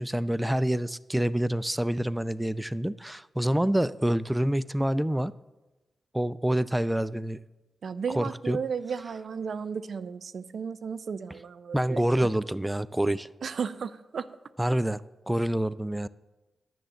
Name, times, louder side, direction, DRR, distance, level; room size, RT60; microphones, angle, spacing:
voice 1, 0.0-5.3 6.1-7.4 8.2-8.6 11.7-13.3 14.6-15.0 15.3-16.1, right 1 dB, 10° right, 17 dB, 0.4 m, -27 dB
voice 2, 7.8-12.0 13.4-14.3, right 6 dB, 70° right, 14 dB, 0.4 m, -34 dB
10.0 x 7.7 x 7.3 m, 1.1 s
supercardioid pair, 40°, 0 cm